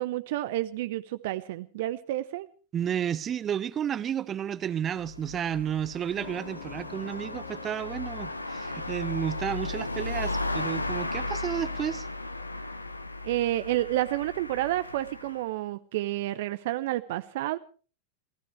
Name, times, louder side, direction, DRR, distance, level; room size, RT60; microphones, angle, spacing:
voice 1, 0.0-2.5 13.2-17.6, right 15 dB, 55° right, 0.7 m, -30 dB
voice 2, 2.7-12.1, right 9 dB, 25° right, 0.9 m, -32 dB
sound 1, 4.8-15.4, left 2 dB, 85° left, 1.2 m, -35 dB
sound 2, 6.2-13.3 13.6-13.7, left 9 dB, 60° left, 2.5 m, -50 dB
29.0 x 15.5 x 3.3 m
figure-of-eight pair, 90°, 0 cm